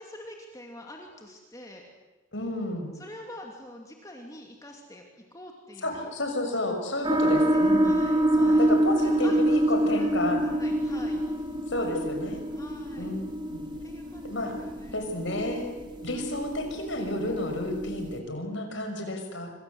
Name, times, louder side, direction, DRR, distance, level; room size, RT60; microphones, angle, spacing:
voice 1, 0.0-1.8 2.9-6.1 7.2-11.6 12.5-13.1 13.8-15.2 16.1-16.5, left 1 dB, 15° left, 1 dB, 2.8 m, -46 dB
voice 2, 2.3-2.9 5.8-7.9 8.4-10.4 11.7-12.4 13.0-13.6 14.2-14.6 14.9-15.7 16.0-19.5, left 1 dB, 65° left, 5 dB, 6.1 m, -31 dB
sound 1, 7.0-18.2, right 1 dB, 25° right, 3.0 m, -26 dB
27.5 x 25.5 x 8.0 m, 1.2 s
head